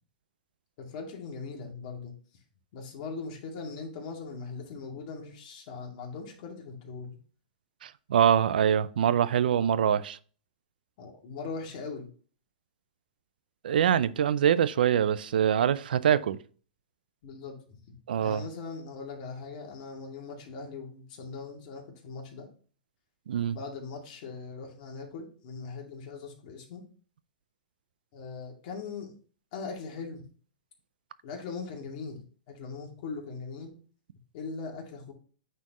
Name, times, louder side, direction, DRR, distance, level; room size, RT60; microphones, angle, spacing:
voice 1, 0.8-2.1 2.7-7.2 11.0-12.1 17.2-17.8 18.2-22.5 23.5-26.8 28.1-29.1 29.5-30.2 31.2-33.7 34.3-35.1, left 4 dB, 50° left, 2.3 m, -40 dB
voice 2, 7.8-10.2 13.6-16.4 18.1-18.4 23.3-23.6, right 9 dB, 80° right, 0.5 m, -24 dB
9.2 x 4.3 x 3.0 m
hypercardioid pair, 135°, 5 cm